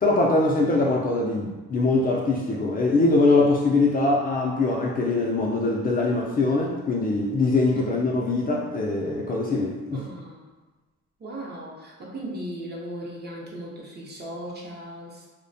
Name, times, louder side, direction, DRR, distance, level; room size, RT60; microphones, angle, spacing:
voice 1, 0.0-10.0, left 2 dB, 30° left, -3 dB, 0.4 m, -22 dB
voice 2, 9.9-10.5 11.2-15.3, right 1 dB, 35° right, -3 dB, 0.6 m, -37 dB
2.5 x 2.1 x 2.6 m, 1.2 s
cardioid pair, 90°, 30 cm